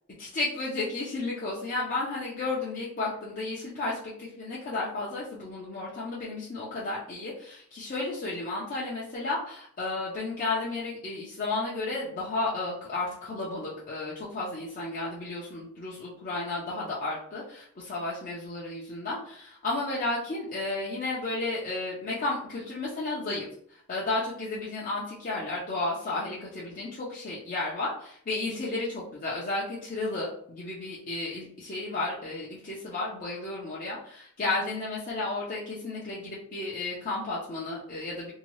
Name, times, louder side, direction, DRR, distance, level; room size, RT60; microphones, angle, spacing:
voice 1, 0.2-38.3, left 2 dB, 35° left, -6 dB, 0.5 m, -33 dB
2.7 x 2.2 x 3.0 m, 0.64 s
head